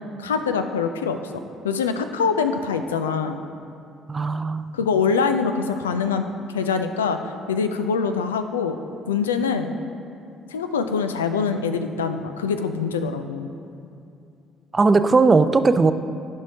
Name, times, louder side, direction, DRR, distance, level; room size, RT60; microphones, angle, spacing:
voice 1, 0.2-1.2 1.6-3.4 4.7-6.3 6.5-7.2 7.5-8.8 9.1-9.7 10.5-13.6, left 5 dB, 85° left, 8 dB, 0.4 m, -24 dB
voice 2, 4.1-4.8 14.7-15.9, right 4 dB, 30° right, 11 dB, 0.4 m, -18 dB
13.5 x 5.4 x 2.8 m, 2.6 s
hypercardioid pair, 55°, 0 cm